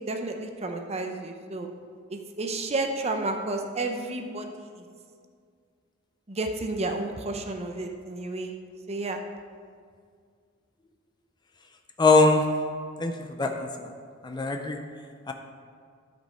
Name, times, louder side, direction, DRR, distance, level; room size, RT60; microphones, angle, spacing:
voice 1, 0.1-1.7 2.1-4.9 6.3-8.5 8.9-9.2, right 2 dB, 30° right, 4 dB, 0.7 m, -31 dB
voice 2, 12.0-12.4 13.0-13.1 13.4-13.7 14.2-14.8 15.3-15.4, left 3 dB, 20° left, 5 dB, 0.5 m, -21 dB
12.5 x 5.2 x 4.3 m, 2.1 s
head